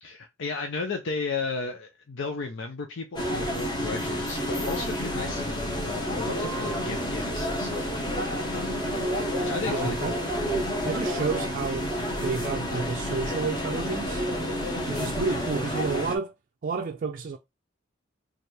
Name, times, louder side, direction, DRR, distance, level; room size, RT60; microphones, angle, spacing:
voice 1, 0.0-8.0 8.5-8.7 9.4-10.2, left 4 dB, 65° left, 0.6 m, -34 dB
sound 1, 3.2-16.2, equal, 20° left, 0.9 m, -29 dB
voice 2, 9.7-10.2 10.8-11.9 12.2-14.2 14.9-16.3 16.6-17.4, right 4 dB, 45° right, 0.4 m, -30 dB
3.3 x 2.4 x 4.4 m
head